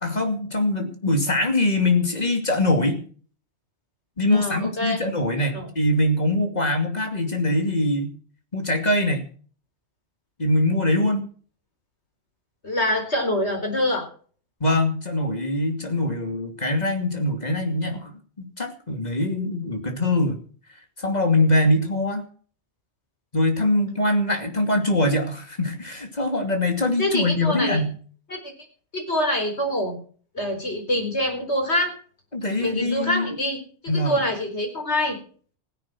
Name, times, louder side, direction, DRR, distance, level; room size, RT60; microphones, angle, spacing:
voice 1, 0.0-3.0 4.2-8.1 8.5-9.2 10.4-11.3 14.6-20.4 21.0-22.2 23.3-27.9 32.3-33.3 33.9-34.2, left 1 dB, 35° left, 4 dB, 2.7 m, -23 dB
voice 2, 4.3-5.0 5.4-5.7 12.6-14.1 27.0-27.8 28.3-28.4 28.9-30.0 30.3-31.9 32.6-33.6 33.8-35.2, left 1 dB, 70° left, 3 dB, 4.7 m, -25 dB
16.0 x 10.5 x 6.0 m, 0.43 s
omnidirectional pair, 1.2 m